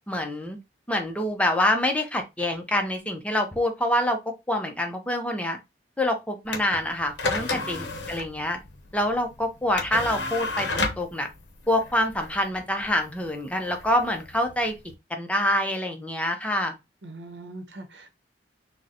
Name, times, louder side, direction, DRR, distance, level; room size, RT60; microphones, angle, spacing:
voice 1, 0.1-0.6 0.9-4.2 4.5-5.6 6.0-8.6 8.9-11.3 11.7-14.7 15.1-16.7, left 1 dB, 5° left, 0.5 m, -26 dB
sound 1, 6.5-14.9, left 3 dB, 85° left, 0.7 m, -33 dB
voice 2, 17.0-18.1, right 2 dB, 80° right, 0.8 m, -41 dB
3.8 x 2.0 x 2.7 m
head